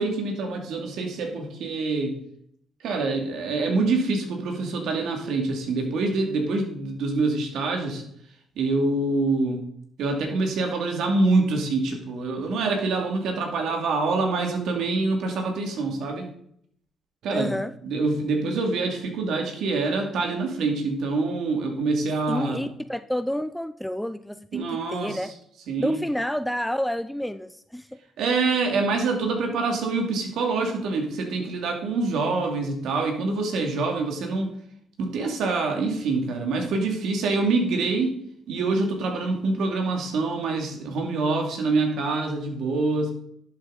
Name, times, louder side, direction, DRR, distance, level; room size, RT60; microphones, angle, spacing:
voice 1, 0.0-2.2 2.8-8.0 8.6-9.7 10.0-16.3 17.2-17.5 17.8-22.7 24.5-25.2 25.7-26.0 28.2-34.5 35.0-38.2 38.5-43.1, right 3 dB, 80° right, 2 dB, 2.5 m, -25 dB
voice 2, 17.3-17.7 22.3-25.3 25.8-28.0, equal, 5° left, 11 dB, 0.5 m, -29 dB
11.5 x 7.8 x 4.0 m, 0.68 s
cardioid pair, 90°, 0 cm